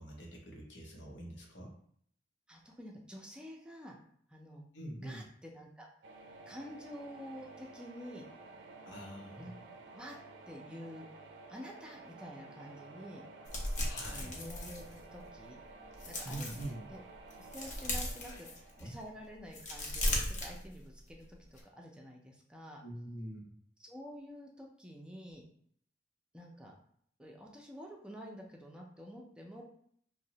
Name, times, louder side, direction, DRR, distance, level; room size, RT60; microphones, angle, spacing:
voice 1, 0.0-1.7 4.7-5.3 8.8-9.6 13.9-14.3 16.2-16.9 18.3-18.4 18.8-19.0 22.8-23.6, right 1 dB, 85° left, 0 dB, 0.7 m, -45 dB
voice 2, 2.5-4.0 4.3-4.7 5.0-5.9 6.5-8.3 9.4-9.5 9.9-10.2 10.5-11.1 11.5-13.2 14.1-15.6 16.0-16.5 16.9-17.0 17.4-18.5 18.8-22.8 23.8-25.4 26.3-26.7 27.2-29.6, equal, 5° right, -1 dB, 0.4 m, -49 dB
sound 1, 6.0-19.9, right 3 dB, 85° right, 0.4 m, -53 dB
sound 2, 13.4-15.4 15.8-16.7 17.2-18.9 19.4-21.1 21.4-21.6, left 1 dB, 45° left, 0.5 m, -37 dB
2.8 x 2.0 x 2.8 m, 0.63 s
head